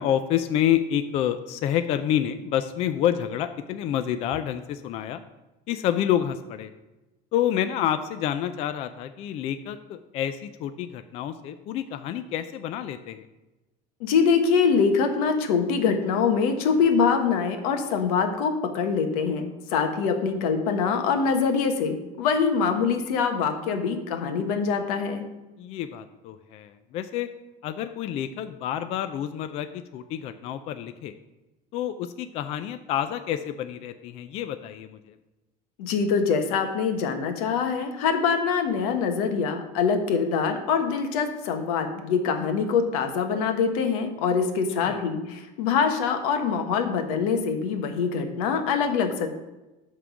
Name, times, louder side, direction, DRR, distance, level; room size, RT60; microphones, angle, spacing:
voice 1, 0.0-5.2 5.7-6.7 7.3-13.3 25.6-27.3 27.6-31.1 31.7-35.2 44.8-45.0, left 10 dB, 35° left, 10 dB, 0.4 m, -28 dB
voice 2, 14.0-25.3 35.8-49.3, left 5 dB, 85° left, 6 dB, 1.3 m, -24 dB
11.0 x 3.7 x 7.0 m, 1.1 s
cardioid pair, 175°, 19 cm